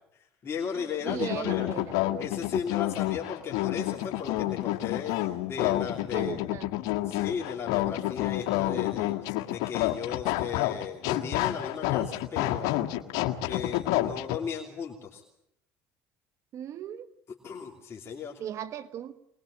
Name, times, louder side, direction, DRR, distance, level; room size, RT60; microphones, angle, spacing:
voice 1, 0.1-1.7 2.2-6.4 7.0-12.9 13.4-15.2 17.4-18.4, left 6 dB, 45° left, 0 dB, 3.1 m, -36 dB
voice 2, 1.0-2.0 6.1-6.7 16.5-17.1 18.4-19.1, right 10 dB, 55° right, 13 dB, 1.2 m, -37 dB
sound 1, 1.1-14.4, left 15 dB, 75° left, 1.7 m, -29 dB
24.5 x 21.0 x 8.8 m, 0.78 s
supercardioid pair, 85°, 6 cm